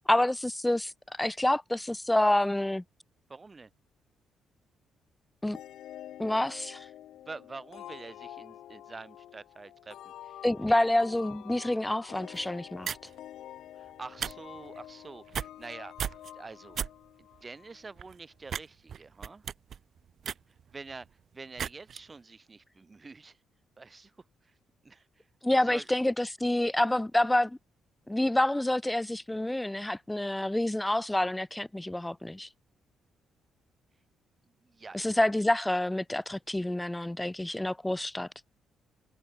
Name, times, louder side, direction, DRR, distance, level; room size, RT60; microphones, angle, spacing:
voice 1, 0.1-0.9 1.2-2.8 5.4-5.6 6.2-6.9 10.4-13.0 25.4-27.6 28.1-32.5 34.9-38.3, left 1 dB, 10° left, 0.5 m, -28 dB
voice 2, 3.3-3.7 7.3-10.4 10.7-10.9 13.7-16.8 17.4-19.4 20.7-21.1 21.3-23.4 23.8-24.1 24.4-24.5 24.8-25.9 34.6-35.3, right 4 dB, 25° right, 5.6 m, -46 dB
sound 1, 5.5-18.0, left 12 dB, 80° left, 1.4 m, -48 dB
sound 2, 12.3-12.5 12.8-13.1 14.0-14.3 14.6-14.8 15.3-15.7 16.0-16.3 16.7-16.9 17.3-17.4 18.0-18.2 18.5-18.6 18.9-21.1 21.6-22.0, right 8 dB, 55° right, 0.4 m, -35 dB
cardioid pair, 90°, 0 cm